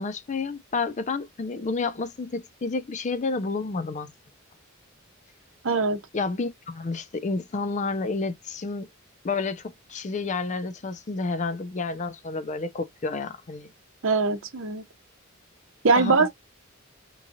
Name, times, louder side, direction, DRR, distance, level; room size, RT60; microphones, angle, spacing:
voice 1, 0.0-4.1 6.1-8.9 9.2-9.6 9.9-13.7 16.0-16.3, left 3 dB, 35° left, 0.5 m, -30 dB
voice 2, 5.6-6.0 14.0-14.8 15.8-16.3, right 4 dB, 65° right, 0.7 m, -22 dB
3.6 x 3.1 x 2.7 m
head